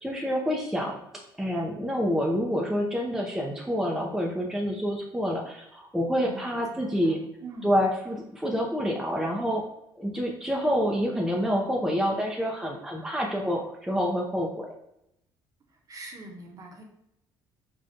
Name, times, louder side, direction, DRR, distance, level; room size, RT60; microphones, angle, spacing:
voice 1, 0.0-1.0 1.4-7.2 7.6-9.6 10.0-14.7, equal, 5° right, -1 dB, 0.5 m, -27 dB
voice 2, 6.2-7.8 15.7-16.8, right 2 dB, 40° right, 2 dB, 0.8 m, -44 dB
5.0 x 2.2 x 2.6 m, 0.82 s
cardioid pair, 105°, 9 cm